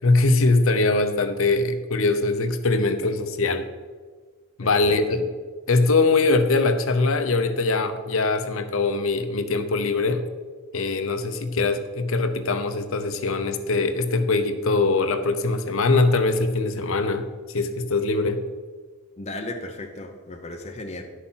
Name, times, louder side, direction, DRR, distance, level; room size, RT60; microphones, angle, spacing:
voice 1, 0.0-3.7 4.6-5.2 5.7-10.2 10.7-18.4, left 3 dB, 70° left, 9 dB, 0.8 m, -22 dB
voice 2, 4.6-5.3 19.2-21.0, left 2 dB, 30° left, 2 dB, 0.9 m, -36 dB
11.0 x 6.5 x 5.7 m, 1.5 s
head